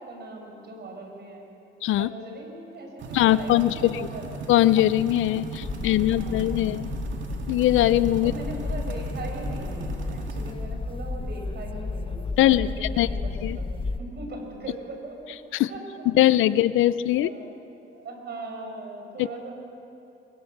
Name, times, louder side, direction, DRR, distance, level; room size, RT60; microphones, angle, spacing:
voice 1, 0.0-1.4 2.0-4.3 5.7-6.9 8.2-15.8 17.1-17.5 17.9-19.6, right 2 dB, 55° right, 2 dB, 5.9 m, -40 dB
sound 1, 3.0-10.5, right 4 dB, 70° right, 2.3 m, -37 dB
voice 2, 3.1-4.0 4.5-6.9 7.5-8.3 12.4-12.7 13.0-13.1 13.4-13.6 15.5-15.7 16.1-17.3, left 14 dB, 85° left, 16 dB, 0.6 m, -21 dB
sound 2, 5.6-14.0, left 3 dB, 25° left, 1.0 m, -33 dB
25.0 x 22.0 x 6.7 m, 2.8 s
cardioid pair, 90°, 20 cm